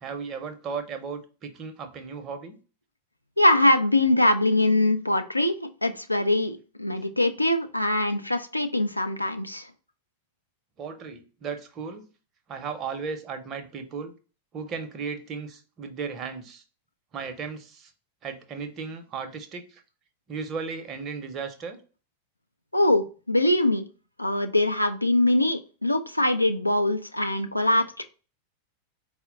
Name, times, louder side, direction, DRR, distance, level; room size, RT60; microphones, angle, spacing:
voice 1, 0.0-2.5 7.0-7.1 10.8-12.1 12.5-14.1 14.5-16.6 17.1-17.9 18.2-19.8 20.3-21.8, right 5 dB, 30° right, 0.7 m, -35 dB
voice 2, 3.4-9.7 22.7-23.8 24.2-27.8, left 1 dB, 85° left, 0.4 m, -23 dB
4.3 x 2.1 x 3.7 m
figure-of-eight pair, 90°, 0 cm